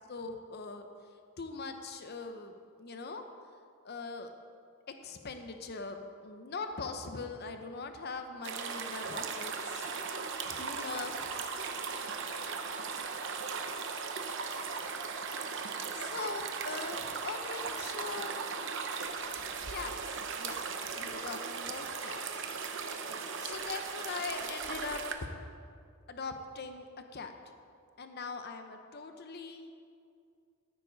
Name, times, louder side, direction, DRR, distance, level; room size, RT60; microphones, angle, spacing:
voice 1, 0.1-0.9 1.4-3.2 3.8-4.3 5.0-9.9 10.4-11.2 16.0-18.4 19.7-20.6 21.0-22.5 23.4-25.0 26.1-26.9 27.1-27.3 28.0-29.7, left 4 dB, 50° left, 6 dB, 0.8 m, -41 dB
sound 1, 8.4-25.1, right 5 dB, 60° right, 0.8 m, -38 dB
14.0 x 9.7 x 4.0 m, 2.3 s
head